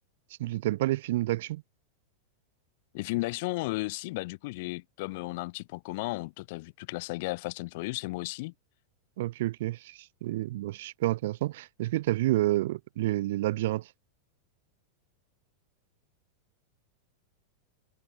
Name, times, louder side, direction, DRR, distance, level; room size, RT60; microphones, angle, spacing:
voice 1, 0.4-1.6 9.2-13.9, right 16 dB, 55° right, 0.6 m, -29 dB
voice 2, 2.9-8.5, left 23 dB, 50° left, 0.6 m, -34 dB
figure-of-eight pair, 90°, 0 cm